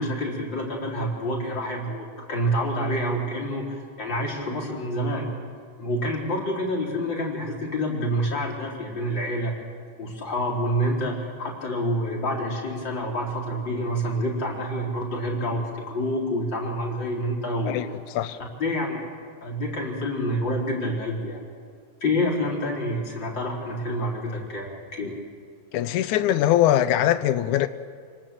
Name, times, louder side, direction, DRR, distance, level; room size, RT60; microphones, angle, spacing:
voice 1, 0.0-5.3 5.8-9.5 10.0-17.9 18.6-19.0 19.4-21.4 22.0-25.2, equal, 35° left, 4.8 m, -27 dB
voice 2, 25.7-27.7, left 12 dB, 90° left, 2.2 m, -21 dB
28.5 x 19.5 x 7.7 m
omnidirectional pair, 3.3 m